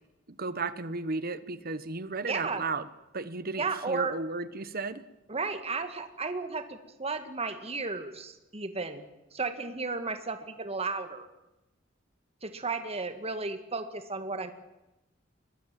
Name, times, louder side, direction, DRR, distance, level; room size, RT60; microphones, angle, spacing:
voice 1, 0.3-2.9 3.1-5.0, right 3 dB, 50° right, 14 dB, 1.2 m, -34 dB
voice 2, 2.3-2.6 3.6-4.2 5.3-9.0 9.3-11.3 12.4-14.5, right 4 dB, 30° right, 9 dB, 1.9 m, -34 dB
22.5 x 21.5 x 7.6 m, 0.98 s
head